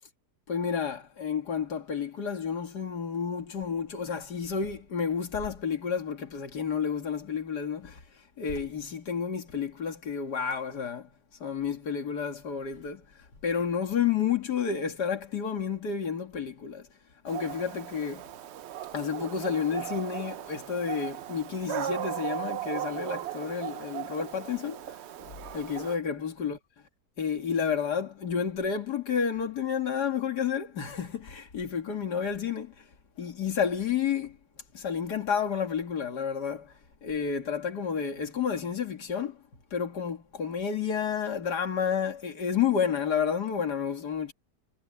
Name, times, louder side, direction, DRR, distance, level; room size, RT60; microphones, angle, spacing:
voice 1, 0.5-8.0 8.4-11.1 11.4-13.0 13.4-16.9 17.2-18.3 18.9-26.6 27.2-32.8 33.2-34.4 34.7-36.7 37.0-39.4 39.7-44.3, left 7 dB, 70° left, 2.6 m, -30 dB
Dog, 17.3-26.0, right 12 dB, 75° right, 0.6 m, -37 dB
omnidirectional pair, 1.8 m